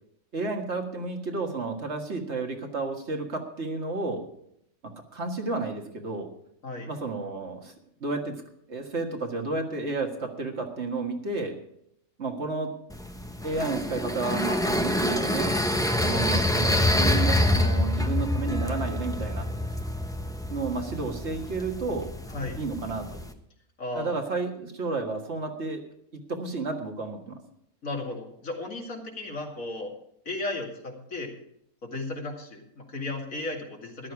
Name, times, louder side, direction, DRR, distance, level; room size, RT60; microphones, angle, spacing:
voice 1, 0.3-4.2 4.8-6.3 6.9-7.7 8.0-8.4 8.7-11.6 12.2-12.7 13.4-15.5 16.0-19.5 20.5-22.1 22.6-23.2 23.9-25.8 26.3-27.4, right 3 dB, 50° right, 3 dB, 2.0 m, -31 dB
sound 1, 12.9-23.3, left 1 dB, 5° left, 0.7 m, -27 dB
voice 2, 22.3-22.6 23.8-24.2 27.8-29.9 30.3-31.3 31.8-34.1, left 2 dB, 65° left, 0 dB, 2.8 m, -35 dB
14.0 x 11.5 x 4.8 m, 0.74 s
omnidirectional pair, 1.5 m